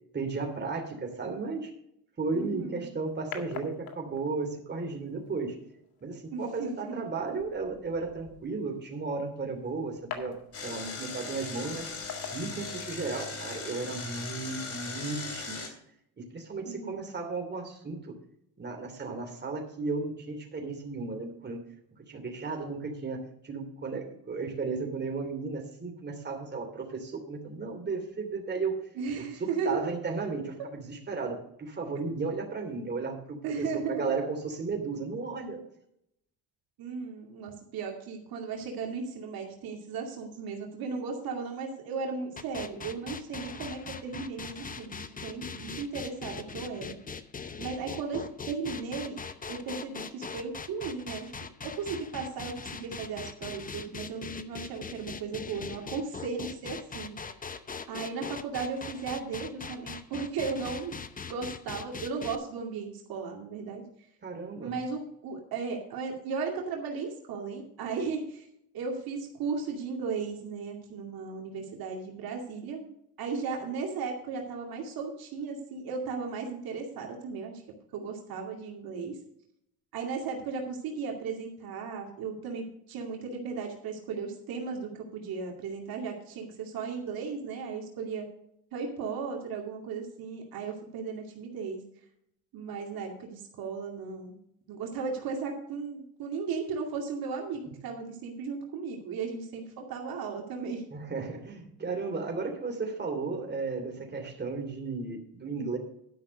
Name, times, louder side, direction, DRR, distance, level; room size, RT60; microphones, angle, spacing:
voice 1, 0.1-1.7 2.2-5.6 6.0-10.4 10.6-11.9 12.3-15.7 16.3-18.1 18.6-21.6 22.1-28.8 29.2-35.6 64.2-64.8 100.9-105.8, right 4 dB, 25° right, 2 dB, 3.0 m, -34 dB
sound 1, 2.3-13.3, left 8 dB, 70° left, 2.1 m, -48 dB
voice 2, 2.3-2.8 6.3-7.1 16.6-17.0 29.0-29.9 33.4-34.0 36.8-47.0 47.6-49.2 49.5-51.3 51.6-57.4 57.9-63.8 64.6-68.4 68.7-72.9 73.2-77.6 77.9-79.2 79.9-88.3 88.7-91.8 92.5-94.4 94.7-100.9, right 5 dB, 65° right, 1 dB, 2.3 m, -36 dB
Engine, 10.5-15.7, left 4 dB, 40° left, 2.9 m, -39 dB
sound 2, 42.4-62.4, left 5 dB, 20° left, 0.8 m, -41 dB
11.5 x 5.8 x 6.5 m, 0.74 s
cardioid pair, 100°, 38 cm